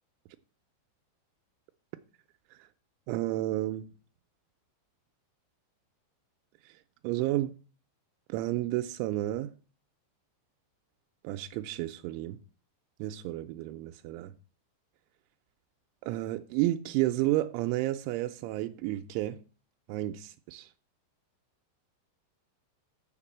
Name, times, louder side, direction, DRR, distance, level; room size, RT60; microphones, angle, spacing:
voice 1, 3.1-3.9 7.0-7.6 8.3-9.5 11.2-12.4 13.0-14.3 16.0-19.4 19.9-20.7, right 16 dB, 90° right, 3.0 m, -31 dB
7.2 x 6.7 x 7.2 m
omnidirectional pair, 5.3 m